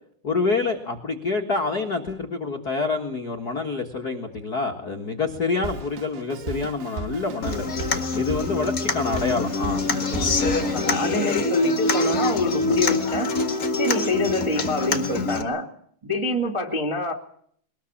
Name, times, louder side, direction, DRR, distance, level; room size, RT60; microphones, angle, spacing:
voice 1, 0.2-7.7 8.1-9.8 10.1-10.4, left 4 dB, 65° left, 2 dB, 0.9 m, -27 dB
Drum kit, 5.6-11.0, right 4 dB, 75° right, 3.5 m, -35 dB
Human voice / Acoustic guitar, 7.4-15.4, left 2 dB, 40° left, 1.3 m, -25 dB
voice 2, 10.5-13.3 13.8-15.7 16.0-17.1, left 2 dB, 15° right, 0 dB, 1.0 m, -26 dB
22.0 x 19.5 x 7.3 m, 0.64 s
omnidirectional pair, 4.6 m